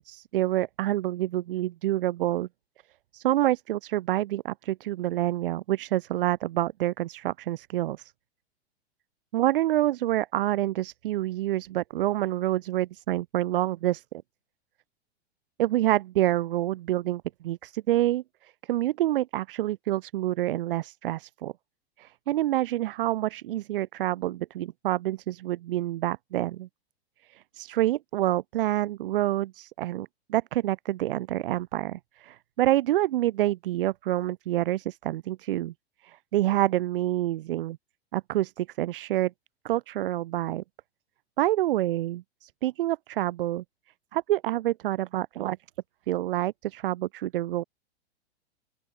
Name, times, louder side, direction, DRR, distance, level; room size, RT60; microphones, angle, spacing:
voice 1, 0.0-2.5 3.1-8.1 9.3-14.0 15.6-21.5 22.0-26.7 27.3-35.7 36.0-37.8 38.1-39.3 39.6-40.6 41.4-43.6 44.1-45.6 46.1-47.6, right 14 dB, 55° right, 0.6 m, -27 dB
open air
figure-of-eight pair, 100°, 33 cm